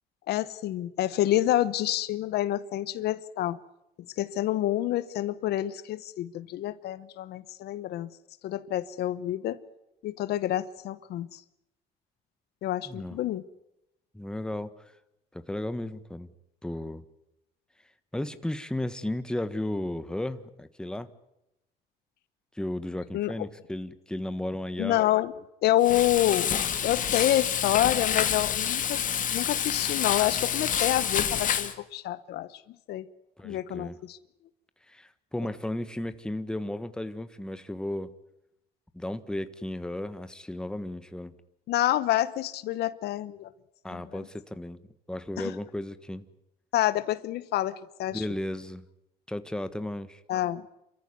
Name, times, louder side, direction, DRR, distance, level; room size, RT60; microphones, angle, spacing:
voice 1, 0.3-3.6 4.2-8.1 8.4-9.6 10.0-11.4 12.6-13.4 23.1-23.3 24.8-25.3 25.6-26.5 26.8-29.0 29.3-32.5 32.9-33.0 33.4-34.2 41.7-43.5 43.9-44.2 45.4-45.5 46.7-48.2 50.3-50.6, left 14 dB, 75° left, 15 dB, 1.0 m, -28 dB
voice 2, 12.8-13.2 14.1-14.9 15.3-16.3 16.6-17.0 18.1-21.1 22.5-25.0 33.4-34.0 34.9-38.1 38.9-41.3 43.8-44.8 45.1-46.2 48.1-48.8 49.3-50.2, left 1 dB, 5° left, 11 dB, 1.3 m, -34 dB
Frying (food), 25.8-31.7, left 9 dB, 50° left, 2.2 m, -28 dB
27.5 x 14.0 x 9.6 m, 0.88 s
cardioid pair, 110°, 17 cm